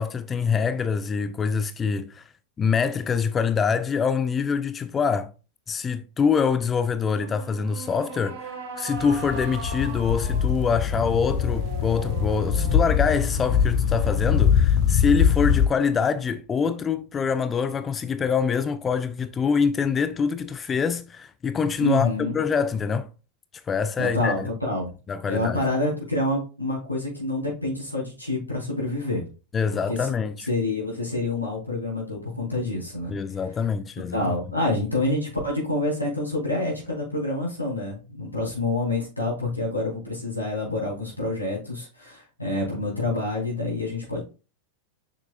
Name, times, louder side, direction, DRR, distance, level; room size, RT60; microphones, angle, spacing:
voice 1, 0.0-2.2 2.6-5.3 5.7-22.1 22.3-23.1 23.7-24.5 25.1-25.6 29.5-30.5 33.1-34.2, left 6 dB, 20° left, 0.3 m, -25 dB
sound 1, 7.2-16.6, right 5 dB, 55° right, 1.7 m, -40 dB
sound 2, 9.0-15.7, left 7 dB, 45° left, 1.0 m, -23 dB
voice 2, 21.8-22.4 24.0-24.9 25.3-29.2 29.7-30.1 30.5-33.2 34.1-44.2, left 2 dB, 90° left, 3.6 m, -27 dB
6.7 x 6.0 x 2.4 m
figure-of-eight pair, 90°, 0 cm